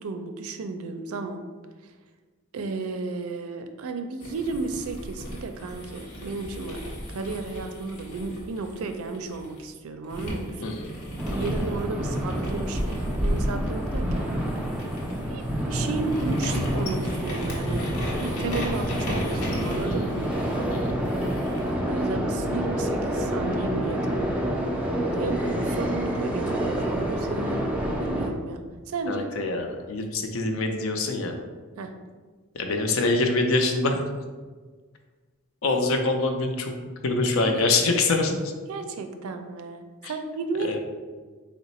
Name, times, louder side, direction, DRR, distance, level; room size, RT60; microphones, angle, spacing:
voice 1, 0.0-1.5 1.8-1.9 2.5-6.8 7.1-10.8 11.3-14.4 15.2-20.2 21.8-24.2 25.2-27.6 28.0-29.3 31.8-31.9 37.5-37.9 38.7-40.8, right 3 dB, 80° right, 7 dB, 0.4 m, -33 dB
sound 1, 4.2-9.6 10.1-21.7, equal, 90° left, 0.9 m, -35 dB
sound 2, 11.2-28.3, equal, 5° right, 0.4 m, -28 dB
voice 2, 29.1-31.3 32.5-34.0 35.6-36.7 37.0-38.3 40.0-40.1 40.6-40.8, left 3 dB, 70° left, 4 dB, 0.5 m, -25 dB
3.9 x 2.1 x 4.1 m, 1.4 s
head